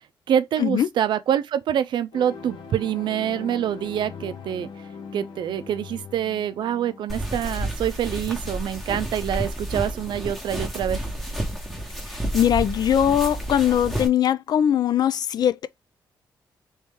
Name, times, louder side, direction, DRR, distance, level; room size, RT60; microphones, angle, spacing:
voice 1, 0.3-4.7 5.1-11.0, right 10 dB, 70° right, 0.4 m, -26 dB
sound 1, 2.1-7.1, left 5 dB, 80° left, 0.8 m, -40 dB
sound 2, 7.1-14.1, right 1 dB, ahead, 1.0 m, -30 dB
voice 2, 12.3-15.7, left 9 dB, 55° left, 0.4 m, -21 dB
3.1 x 2.8 x 3.6 m
cardioid pair, 125°, 8 cm